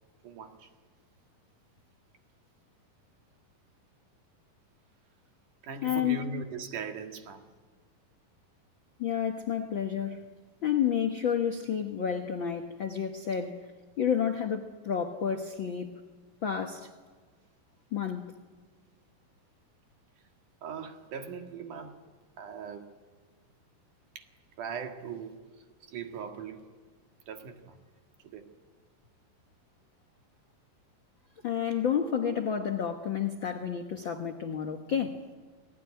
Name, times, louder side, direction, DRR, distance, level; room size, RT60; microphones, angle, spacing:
voice 1, 0.2-0.7 5.6-7.5 9.6-9.7 20.6-22.0 22.4-22.9 24.2-24.3 24.6-26.7 27.3-27.8 28.2-28.5 31.8-32.4, right 5 dB, 60° right, 3.2 m, -40 dB
voice 2, 5.8-6.2 9.0-10.2 10.6-13.6 14.0-15.9 16.4-16.9 17.9-18.3 31.4-35.2, left 8 dB, 85° left, 1.0 m, -30 dB
28.0 x 19.0 x 9.7 m
omnidirectional pair, 4.2 m